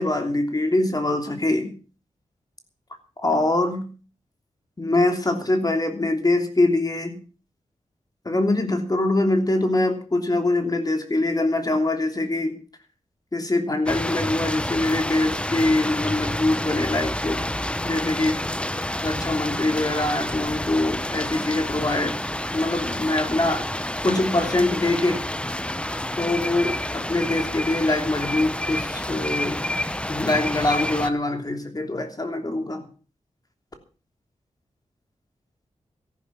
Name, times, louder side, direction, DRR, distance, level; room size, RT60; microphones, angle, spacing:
voice 1, 0.0-1.7 3.2-3.9 4.8-7.2 8.2-12.6 13.3-17.4 17.8-18.4 19.0-22.2 22.5-23.6 24.0-25.2 26.2-29.6 30.1-32.8, left 2 dB, 30° left, 5 dB, 3.1 m, -23 dB
sound 1, 13.9-31.1, left 1 dB, 10° left, 0.8 m, -29 dB
14.0 x 12.0 x 6.0 m, 0.37 s
wide cardioid pair, 100°, 13 cm